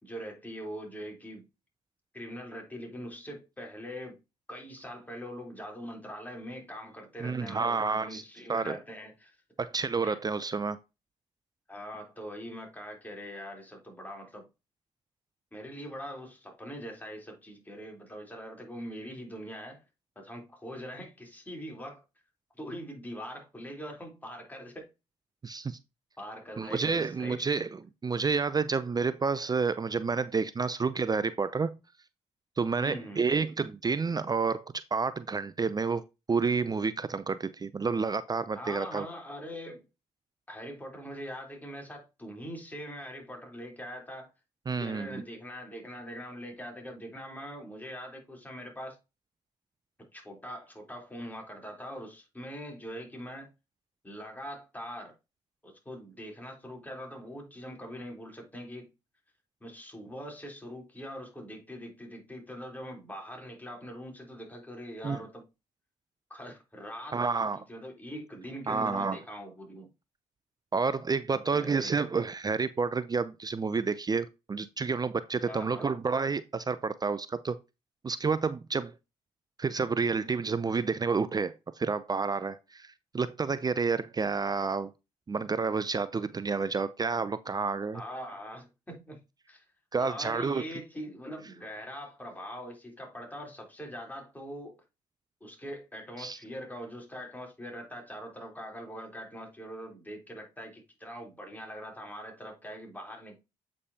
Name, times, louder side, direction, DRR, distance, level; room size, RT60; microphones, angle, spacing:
voice 1, 0.0-1.5 2.1-4.2 4.5-9.4 10.0-10.2 11.7-14.5 15.5-19.8 20.2-22.0 22.6-24.9 26.2-27.4 32.8-33.3 38.5-39.8 40.5-44.3 44.8-49.0 50.1-53.5 54.0-55.1 55.6-58.9 59.6-65.4 66.3-69.9 71.3-72.1 75.4-75.9 87.9-89.2 89.5-89.6 90.0-94.8 95.4-103.4, equal, 10° left, 3.6 m, -42 dB
voice 2, 7.2-8.2 8.5-8.8 9.6-10.8 25.4-25.8 26.6-31.7 32.6-34.6 34.9-39.1 44.7-45.2 65.0-65.2 67.1-67.6 68.7-69.2 70.7-77.6 78.0-78.9 79.6-84.9 85.3-88.0 89.9-90.6 96.2-96.4, right 4 dB, 30° right, 0.5 m, -30 dB
8.2 x 5.3 x 2.8 m
supercardioid pair, 60°, 13 cm